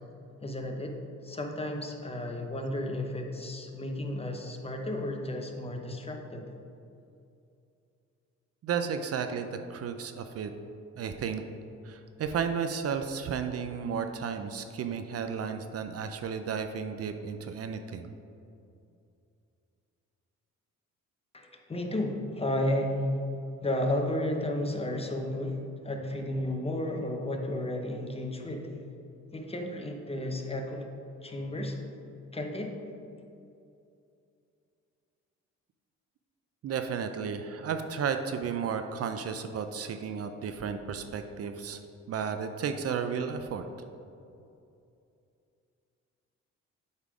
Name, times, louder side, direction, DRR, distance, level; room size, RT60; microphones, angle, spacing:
voice 1, 0.4-1.0 1.2-6.5 21.3-23.2 23.6-25.6 25.8-28.7 29.3-30.8 31.2-31.8 32.3-32.8, left 1 dB, 20° left, 3 dB, 0.8 m, -33 dB
voice 2, 8.6-10.5 11.0-11.4 11.8-18.1 36.6-41.8 42.1-43.7, right 6 dB, 55° right, 7 dB, 0.5 m, -33 dB
8.2 x 3.7 x 4.9 m, 2.6 s
cardioid pair, 90°, 30 cm